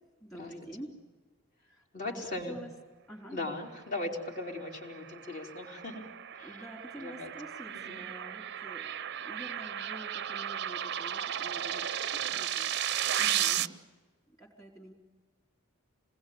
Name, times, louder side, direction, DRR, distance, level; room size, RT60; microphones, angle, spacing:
voice 1, 0.2-1.0 1.6-2.7 3.1-3.5 6.4-12.7 14.4-14.9, right 1 dB, 15° left, 1 dB, 3.9 m, -48 dB
voice 2, 1.9-2.6 3.3-6.1 6.3-6.6 7.0-7.3 7.7-8.0 13.2-13.6, left 2 dB, 35° left, 2 dB, 3.9 m, -39 dB
sound 1, 4.8-13.7, right 10 dB, 50° right, 0.7 m, -34 dB
28.0 x 20.5 x 8.7 m, 1.4 s
head